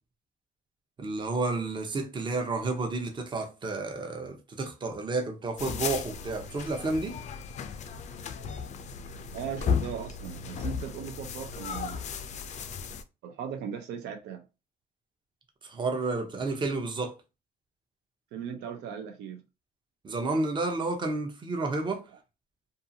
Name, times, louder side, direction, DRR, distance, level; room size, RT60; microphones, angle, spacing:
voice 1, 1.0-7.2 15.6-17.1 20.0-22.0, right 3 dB, 30° right, 0.7 m, -31 dB
sound 1, 5.6-13.0, left 6 dB, 45° left, 0.4 m, -35 dB
voice 2, 9.3-12.3 13.2-14.4 18.3-19.4, right 7 dB, 80° right, 0.6 m, -38 dB
2.6 x 2.4 x 2.7 m
cardioid pair, 110°, 17 cm